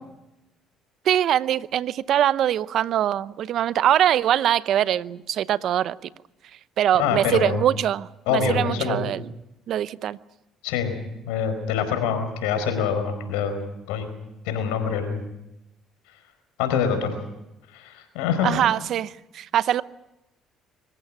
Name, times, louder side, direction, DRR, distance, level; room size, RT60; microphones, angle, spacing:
voice 1, 1.0-6.0 6.8-9.2 9.7-10.2 18.4-19.8, right 11 dB, 65° right, 0.7 m, -22 dB
voice 2, 6.9-7.6 8.3-9.1 10.6-10.9 11.3-13.6 13.9-14.1 14.4-15.2 16.6-17.1 17.7-18.6, left 7 dB, 90° left, 4.7 m, -25 dB
24.5 x 15.0 x 8.7 m
supercardioid pair, 70°, 0 cm